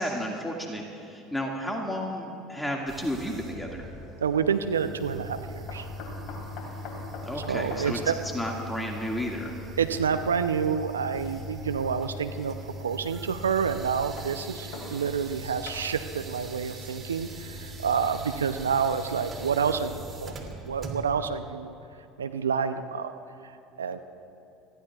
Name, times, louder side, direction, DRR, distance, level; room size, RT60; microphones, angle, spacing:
voice 1, 0.0-3.9 7.2-8.0 8.3-9.6, equal, 5° left, -1 dB, 2.0 m, -32 dB
sound 1, 2.9-21.3, equal, 30° right, 2.7 m, -41 dB
voice 2, 4.2-5.9 7.5-8.1 9.8-21.7 22.2-23.1 23.8-24.0, right 6 dB, 90° right, 8 dB, 0.5 m, -28 dB
sound 2, 5.7-10.0 10.9-11.0 12.2-12.3 13.9-15.4 15.7-16.2 18.0-19.4 19.9-20.0 20.3-20.4, left 3 dB, 55° left, 3.6 m, -44 dB
29.0 x 15.0 x 2.4 m, 2.8 s
hypercardioid pair, 75°, 0 cm